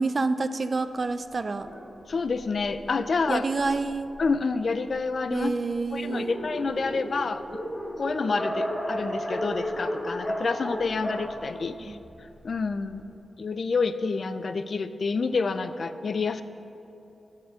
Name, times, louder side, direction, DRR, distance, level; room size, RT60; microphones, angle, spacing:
voice 1, 0.0-1.7 3.3-4.1 5.3-6.4 11.9-12.0, right 3 dB, 40° right, 12 dB, 0.4 m, -28 dB
Dog, 1.6-4.6 5.3-5.4 5.7-5.8 6.0-12.4, equal, 25° left, 2.4 m, -34 dB
voice 2, 2.1-3.4 4.2-5.5 5.9-7.6 7.9-12.0 12.4-13.0 13.4-16.4, left 4 dB, 55° left, 11 dB, 0.4 m, -28 dB
11.0 x 5.6 x 6.8 m, 2.9 s
wide cardioid pair, 125°, 0 cm